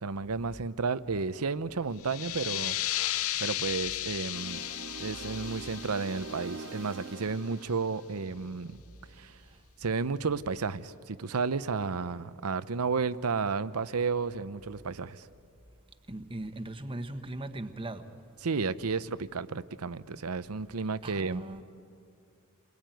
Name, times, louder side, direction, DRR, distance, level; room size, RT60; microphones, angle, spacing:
voice 1, 0.0-2.8 3.4-4.6 5.0-8.8 9.2-9.3 9.8-15.2 18.4-21.4, right 4 dB, 85° right, 0.8 m, -32 dB
sound 1, 2.0-7.4, left 13 dB, 70° left, 0.6 m, -35 dB
sound 2, 4.3-8.7, right 3 dB, 60° right, 1.2 m, -44 dB
voice 2, 16.1-18.0 21.0-21.6, right 1 dB, 25° right, 1.3 m, -39 dB
29.0 x 22.5 x 9.2 m
head